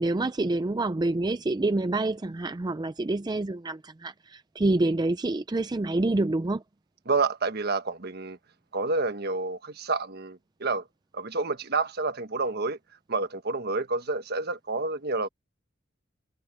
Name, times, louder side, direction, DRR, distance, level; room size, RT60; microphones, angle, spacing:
voice 1, 0.0-6.6, right 2 dB, 20° right, 0.4 m, -27 dB
voice 2, 7.1-8.4 8.7-10.8 11.1-12.8 13.1-15.3, right 3 dB, 50° right, 1.3 m, -29 dB
head